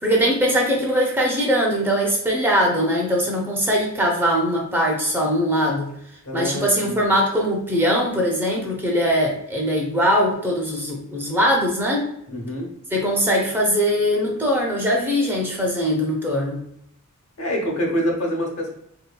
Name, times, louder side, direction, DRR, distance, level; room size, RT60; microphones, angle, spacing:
voice 1, 0.0-5.9 6.3-12.1 12.9-16.6, equal, 10° right, -2 dB, 0.5 m, -21 dB
voice 2, 6.2-7.0 12.3-12.7 17.4-18.7, equal, 80° left, -1 dB, 0.9 m, -26 dB
3.6 x 2.8 x 2.2 m, 0.72 s
head